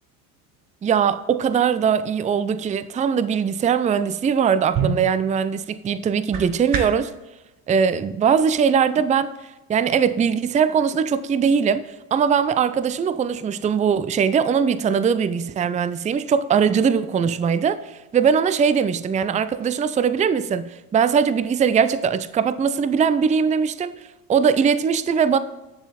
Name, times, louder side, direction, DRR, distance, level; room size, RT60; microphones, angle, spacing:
voice 1, 0.8-7.1 7.7-9.3 9.7-24.0 24.3-25.4, right 7 dB, 15° right, 0.5 m, -21 dB
sound 1, 4.3-7.1, right 6 dB, 45° right, 1.7 m, -29 dB
9.7 x 7.2 x 4.2 m
hypercardioid pair, 80°, 46 cm